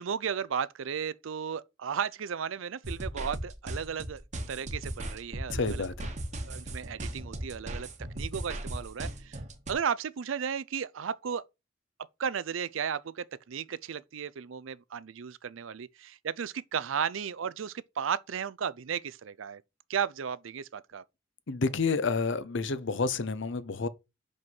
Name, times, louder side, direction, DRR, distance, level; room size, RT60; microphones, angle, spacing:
voice 1, 0.0-4.2 4.5-5.8 6.4-7.9 8.1-9.4 9.7-11.4 12.2-19.6 19.9-21.0, right 7 dB, 75° right, 0.5 m, -34 dB
sound 1, 2.8-9.7, right 1 dB, 40° right, 1.2 m, -37 dB
voice 2, 5.5-6.1 21.5-23.9, left 4 dB, 65° left, 0.7 m, -29 dB
6.1 x 5.2 x 5.4 m
head